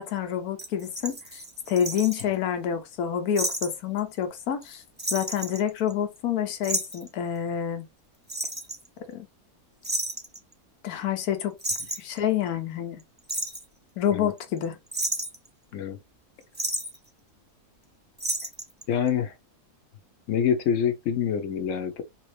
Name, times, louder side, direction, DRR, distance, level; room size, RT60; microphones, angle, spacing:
voice 1, 0.0-1.4 1.7-4.8 5.1-7.9 9.1-9.3 10.8-11.5 12.0-13.0 14.0-14.8, left 9 dB, 90° left, 1.3 m, -28 dB
sound 1, 0.6-2.2 3.4-3.7 4.0-4.1 4.4-4.7 5.0-6.2 6.6-7.1 8.3-8.9 9.8-10.4 11.2-11.3 11.6-12.2 13.0-13.6 14.4-14.6 14.9-15.5 16.5-17.0 18.2-18.8 19.1-19.2, right 1 dB, 10° right, 0.6 m, -31 dB
voice 2, 18.9-19.3 20.3-22.0, left 8 dB, 65° left, 1.0 m, -26 dB
3.5 x 2.8 x 3.2 m
omnidirectional pair, 1.5 m